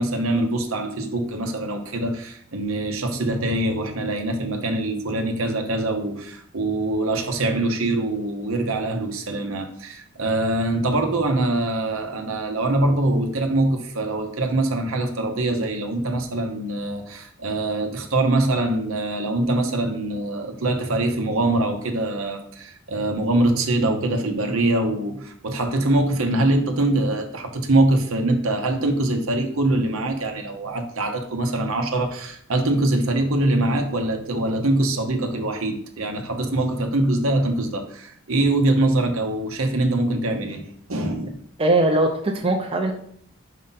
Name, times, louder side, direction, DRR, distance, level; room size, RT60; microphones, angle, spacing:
voice 1, 0.0-41.4, right 2 dB, 75° right, 0.9 m, -23 dB
voice 2, 41.6-42.9, right 2 dB, 25° right, 0.6 m, -20 dB
5.5 x 5.0 x 4.1 m
head